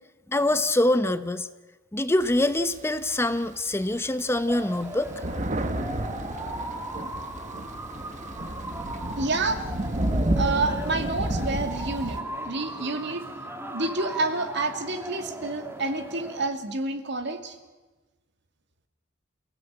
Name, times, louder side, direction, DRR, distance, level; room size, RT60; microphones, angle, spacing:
voice 1, 0.3-1.5 1.9-5.1, left 1 dB, 15° left, 12 dB, 0.7 m, -24 dB
Thunder, 2.2-3.5 4.0-4.1 4.4-12.2, right 1 dB, 40° right, 1.4 m, -31 dB
sound 1, 4.5-16.5, right 1 dB, 15° right, 2.3 m, -37 dB
voice 2, 9.2-9.7 10.4-13.2 13.7-17.5, right 3 dB, 60° right, 7 dB, 2.4 m, -29 dB
29.0 x 17.0 x 8.9 m, 1.2 s
head